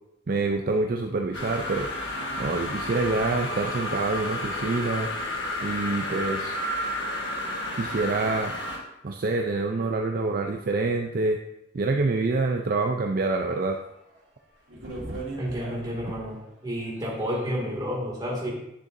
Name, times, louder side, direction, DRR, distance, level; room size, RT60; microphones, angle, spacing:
voice 1, 0.3-1.9 2.4-5.1 5.6-6.6 7.8-8.5 9.0-11.4 11.7-13.8, right 3 dB, 50° right, 3 dB, 0.4 m, -26 dB
sound 1, 1.3-8.8, left 1 dB, 65° left, 1.3 m, -31 dB
sound 2, 13.6-13.7 14.1-14.2 14.7-16.3 16.9-17.3, right 2 dB, 85° right, 2.4 m, -38 dB
voice 2, 15.4-18.5, equal, 20° right, -4 dB, 2.2 m, -30 dB
10.0 x 6.6 x 2.6 m, 0.84 s
head